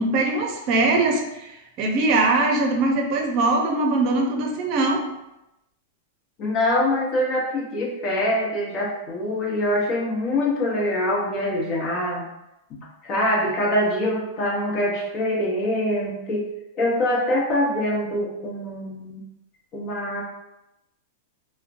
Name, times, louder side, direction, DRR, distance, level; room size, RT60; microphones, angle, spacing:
voice 1, 0.0-1.5 1.8-5.0, right 2 dB, 45° right, 2 dB, 0.6 m, -21 dB
voice 2, 6.4-12.3 12.7-16.5 16.7-19.2 19.7-20.2, left 1 dB, 40° left, -3 dB, 1.0 m, -24 dB
3.7 x 2.2 x 2.5 m, 0.90 s
hypercardioid pair, 130°, 0 cm